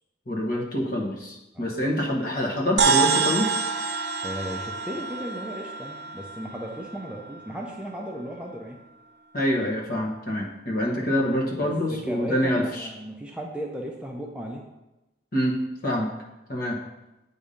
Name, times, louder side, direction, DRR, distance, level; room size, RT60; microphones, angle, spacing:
voice 1, 0.3-3.5 9.3-12.9 15.3-16.1 16.5-16.8, equal, 50° left, -2 dB, 1.2 m, -26 dB
sound 1, 2.8-7.4, right 5 dB, 60° right, 0.4 m, -26 dB
voice 2, 4.2-8.8 11.6-14.6, equal, 5° right, -1 dB, 0.5 m, -36 dB
8.1 x 2.7 x 5.0 m, 0.99 s
head